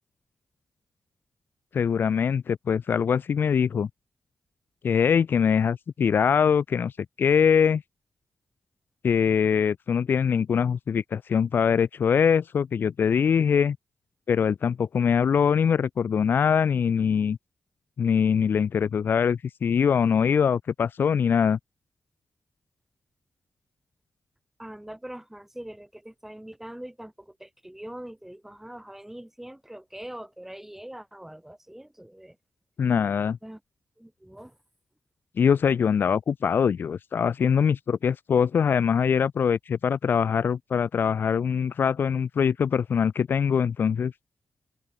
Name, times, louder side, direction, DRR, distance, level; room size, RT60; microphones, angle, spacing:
voice 1, 1.7-3.9 4.8-6.9 7.2-7.8 9.0-13.8 14.3-17.4 18.0-21.6 32.8-33.4 35.4-44.1, left 7 dB, 65° left, 0.4 m, -23 dB
voice 2, 24.6-32.4 33.4-33.6 34.0-34.6, right 1 dB, 10° right, 1.5 m, -42 dB
cardioid pair, 60°, 4 cm